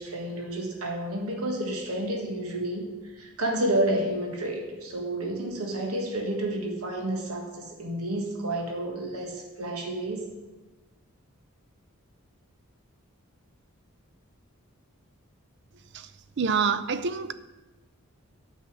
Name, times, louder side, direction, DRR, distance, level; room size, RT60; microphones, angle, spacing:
voice 1, 0.0-2.9 3.2-10.3, right 1 dB, 85° right, 1.6 m, -30 dB
voice 2, 16.4-17.3, right 5 dB, 50° right, 0.4 m, -26 dB
8.4 x 5.6 x 7.4 m
head